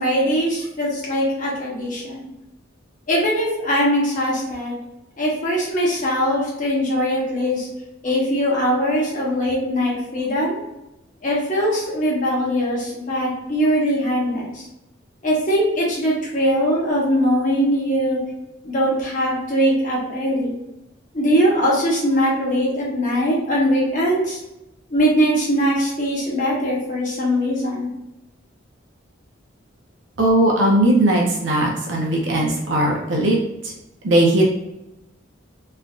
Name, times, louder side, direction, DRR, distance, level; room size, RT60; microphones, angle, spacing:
voice 1, 0.0-2.2 3.1-4.8 5.2-7.7 8.0-10.6 11.2-14.5 15.2-18.2 18.6-20.5 21.1-24.4 24.9-27.9, equal, 40° left, -4 dB, 1.0 m, -21 dB
voice 2, 30.2-33.4 34.0-34.5, right 1 dB, 75° right, -1 dB, 0.6 m, -18 dB
3.2 x 2.5 x 2.4 m, 0.93 s
head